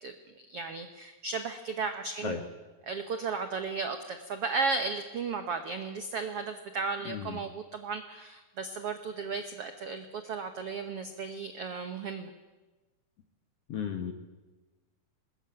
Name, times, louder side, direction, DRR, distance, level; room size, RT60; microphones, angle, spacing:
voice 1, 0.0-2.4 2.9-12.3, right 4 dB, 80° right, 8 dB, 1.3 m, -35 dB
voice 2, 7.1-7.4 13.7-14.1, left 7 dB, 60° left, 6 dB, 1.7 m, -34 dB
21.0 x 20.0 x 9.0 m, 1.2 s
omnidirectional pair, 4.4 m